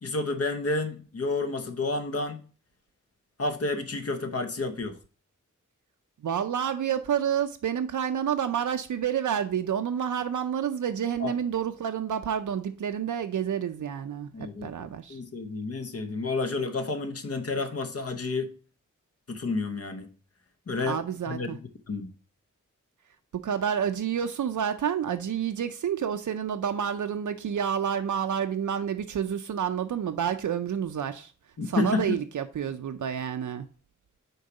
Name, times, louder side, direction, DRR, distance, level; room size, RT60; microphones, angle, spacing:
voice 1, 0.0-2.4 3.4-5.0 11.2-11.3 14.3-18.5 19.3-20.1 20.7-21.0 21.3-21.6 21.9-22.1 31.6-32.2, left 3 dB, 50° left, 0.9 m, -30 dB
voice 2, 6.2-15.2 20.9-21.6 23.3-31.3 31.7-33.6, right 8 dB, 75° right, 0.5 m, -29 dB
6.5 x 4.6 x 3.9 m
wide cardioid pair, 130°, 31 cm